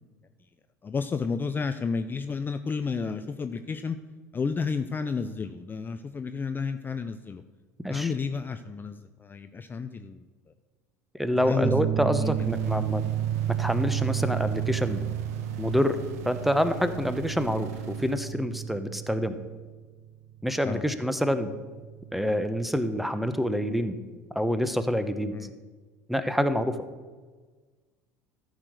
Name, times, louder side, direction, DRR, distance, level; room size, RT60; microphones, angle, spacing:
voice 1, 0.8-4.0 4.3-7.4 7.9-10.3 11.3-11.7 12.2-12.5 20.6-20.8 25.3-25.5, left 5 dB, 25° left, 9 dB, 0.5 m, -31 dB
voice 2, 11.2-13.0 13.6-15.0 15.6-16.0 16.2-19.4 20.4-21.5 22.1-24.0 24.3-25.3 26.1-26.8, equal, ahead, 11 dB, 0.8 m, -27 dB
sound 1, 11.6-22.8, right 11 dB, 45° right, 0.5 m, -32 dB
sound 2, 12.2-18.3, right 7 dB, 70° right, 0.8 m, -42 dB
13.5 x 4.9 x 6.4 m, 1.4 s
hypercardioid pair, 70°, 9 cm